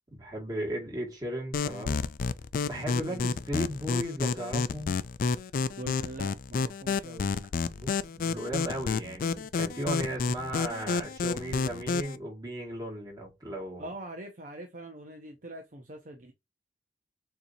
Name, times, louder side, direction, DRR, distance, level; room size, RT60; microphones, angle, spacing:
voice 1, 0.1-2.0 2.6-4.9 7.8-13.9, right 1 dB, 20° right, 2.1 m, -36 dB
sound 1, 1.5-12.2, left 4 dB, 50° left, 0.3 m, -30 dB
voice 2, 5.8-7.5 13.8-16.3, right 1 dB, 45° right, 0.7 m, -42 dB
6.8 x 2.9 x 2.7 m
head